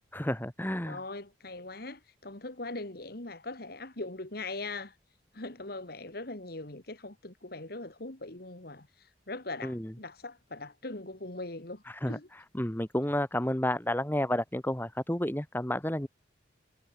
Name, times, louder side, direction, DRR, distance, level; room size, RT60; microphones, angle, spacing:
voice 1, 0.1-1.0 9.6-9.9 11.9-16.1, left 1 dB, 10° left, 1.8 m, -31 dB
voice 2, 0.9-5.0 5.3-12.3, left 2 dB, 55° left, 2.5 m, -41 dB
head